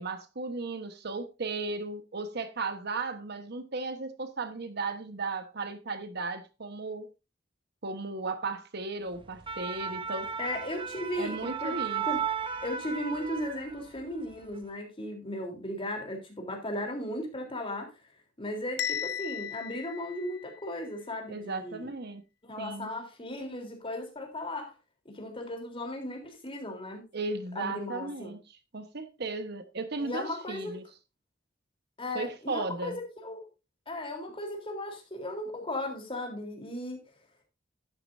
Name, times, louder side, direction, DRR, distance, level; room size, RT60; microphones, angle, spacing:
voice 1, 0.0-7.1 7.8-10.3 11.2-12.0 21.3-22.2 22.6-22.9 27.1-30.8 32.1-33.0, right 3 dB, 60° right, 1.2 m, -35 dB
sound 1, 9.2-14.0 14.3-14.6, right 7 dB, 25° right, 0.7 m, -35 dB
voice 2, 10.4-11.4 11.6-11.8 12.1-12.2 12.6-17.9 18.4-21.9 22.4-24.7 25.1-27.1 27.6-28.4 30.0-30.8 32.0-33.5 33.9-37.0, left 1 dB, 30° left, 3.5 m, -36 dB
Bell, 18.8-20.8, left 10 dB, 60° left, 0.7 m, -36 dB
12.0 x 10.5 x 2.6 m
head